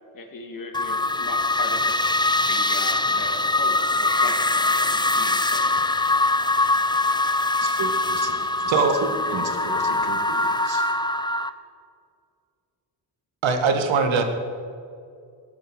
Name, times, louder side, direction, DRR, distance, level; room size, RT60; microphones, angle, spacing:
voice 1, 0.1-1.9 2.5-5.7, left 3 dB, 45° left, 4 dB, 2.5 m, -38 dB
sound 1, 0.7-11.5, left 2 dB, 10° left, 0.7 m, -23 dB
voice 2, 7.6-8.3 9.0-10.8, right 4 dB, 55° right, 4 dB, 2.6 m, -34 dB
voice 3, 13.4-14.2, right 5 dB, 75° right, 7 dB, 2.0 m, -20 dB
16.5 x 11.0 x 8.1 m, 2.3 s
cardioid pair, 90°, 46 cm